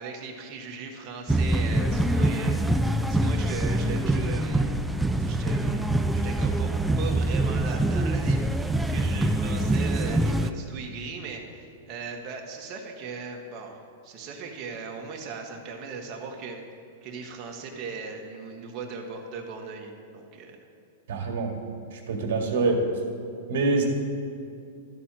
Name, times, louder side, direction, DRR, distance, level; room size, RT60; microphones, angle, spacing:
voice 1, 0.0-4.7 5.2-16.6 17.0-20.6, right 4 dB, 35° right, 1 dB, 1.5 m, -38 dB
sound 1, 1.3-10.5, right 1 dB, 5° right, 0.4 m, -24 dB
voice 2, 21.1-21.5 21.9-22.8 23.5-23.9, right 3 dB, 70° right, 1 dB, 2.0 m, -25 dB
12.5 x 4.3 x 7.5 m, 2.6 s
hypercardioid pair, 140°, 0 cm